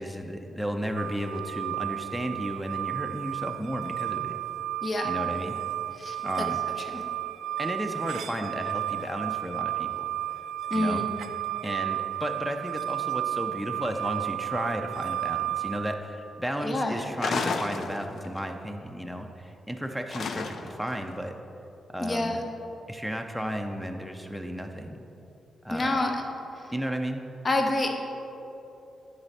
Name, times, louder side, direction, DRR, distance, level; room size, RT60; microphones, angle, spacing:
voice 1, 0.0-4.3 5.0-5.6 6.2-6.6 7.6-10.1 10.7-11.1 11.6-21.3 21.9-22.4 22.9-25.0 25.6-26.0 26.7-27.2, equal, ahead, 3 dB, 0.6 m, -33 dB
sound 1, 1.0-15.8, right 13 dB, 80° right, 0.4 m, -32 dB
voice 2, 6.0-7.0 10.7-11.1 16.6-17.0 22.0-22.4 25.7-26.1 26.6-26.7 27.4-27.9, left 2 dB, 40° left, 3 dB, 0.9 m, -28 dB
sound 2, 17.2-18.4 20.1-20.9, left 4 dB, 70° left, 0.5 m, -31 dB
9.6 x 4.0 x 4.2 m, 3.0 s
cardioid pair, 65°, 0 cm